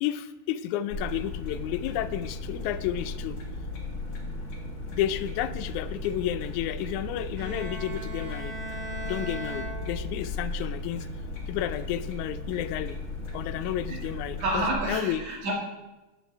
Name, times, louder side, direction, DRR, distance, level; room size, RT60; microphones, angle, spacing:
voice 1, 0.0-3.4 4.9-8.5 9.0-11.1 11.5-13.0 13.3-15.2, left 11 dB, 85° left, 14 dB, 2.0 m, -31 dB
sound 1, 0.9-14.7, left 2 dB, 45° left, 2.2 m, -36 dB
Bowed string instrument, 7.4-10.5, right 1 dB, 65° right, 3.3 m, -39 dB
voice 2, 14.4-15.5, right 2 dB, 85° right, -2 dB, 3.8 m, -29 dB
12.5 x 10.0 x 3.5 m, 1.1 s
omnidirectional pair, 3.3 m